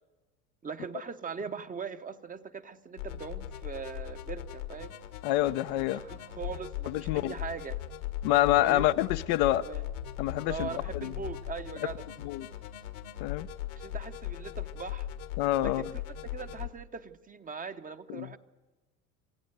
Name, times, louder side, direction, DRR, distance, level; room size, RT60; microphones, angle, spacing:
voice 1, 0.6-5.0 5.9-7.8 8.6-8.8 9.3-9.8 10.5-12.1 13.7-15.1 15.6-18.4, right 5 dB, 20° right, 1.0 m, -40 dB
sound 1, 3.0-16.7, left 12 dB, 75° left, 1.7 m, -39 dB
voice 2, 5.2-6.0 6.9-7.3 8.2-9.6 10.2-10.7 10.9-11.1 12.2-12.5 13.2-13.5 15.4-15.8 18.1-18.3, left 15 dB, 50° left, 0.7 m, -27 dB
25.5 x 15.5 x 7.9 m
hypercardioid pair, 80°, 43 cm